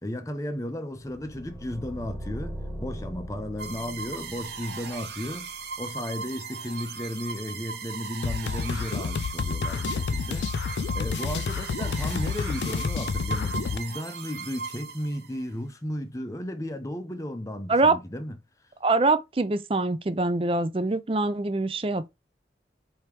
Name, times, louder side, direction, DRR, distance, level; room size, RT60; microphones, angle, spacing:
voice 1, 0.0-10.7 10.9-18.4, left 1 dB, 20° left, 0.6 m, -34 dB
sound 1, 0.9-5.9, equal, 5° right, 1.4 m, -40 dB
sound 2, 3.6-15.4, right 5 dB, 75° right, 0.9 m, -38 dB
sound 3, 8.2-13.8, left 5 dB, 85° left, 0.4 m, -29 dB
voice 2, 18.8-22.1, right 3 dB, 30° right, 0.4 m, -24 dB
4.7 x 2.9 x 3.4 m
head